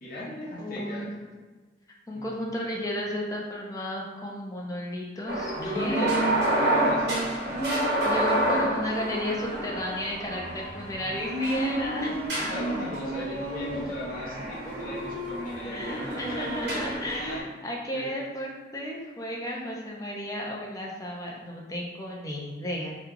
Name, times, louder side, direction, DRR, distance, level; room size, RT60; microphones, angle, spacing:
voice 1, 0.0-1.1 2.1-2.7 5.6-7.3 12.0-12.1 12.5-16.8 17.3-17.4 17.9-18.1, left 1 dB, 50° left, -7 dB, 0.8 m, -37 dB
voice 2, 0.6-1.1 2.1-6.4 8.0-12.5 15.7-23.0, equal, 20° left, -2 dB, 0.5 m, -33 dB
sound 1, 5.3-17.4, right 1 dB, 75° right, 0.9 m, -29 dB
2.9 x 2.3 x 3.7 m, 1.4 s
head